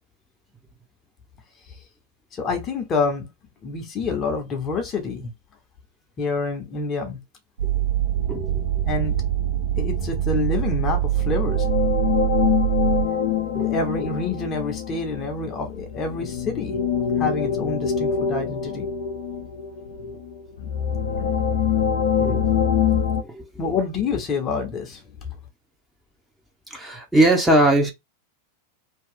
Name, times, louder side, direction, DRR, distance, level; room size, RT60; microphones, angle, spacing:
voice 1, 2.3-3.3 3.6-5.3 6.2-7.2 8.9-9.2 9.8-11.7 13.6-16.8 17.2-18.9 23.6-25.0, left 4 dB, 30° left, 0.9 m, -27 dB
sound 1, 7.6-13.1, right 12 dB, 60° right, 1.3 m, -23 dB
sound 2, 11.1-23.2, left 8 dB, 65° left, 0.6 m, -25 dB
voice 2, 26.7-27.9, right 1 dB, 5° right, 1.0 m, -20 dB
2.9 x 2.3 x 3.7 m
figure-of-eight pair, 90°, 0 cm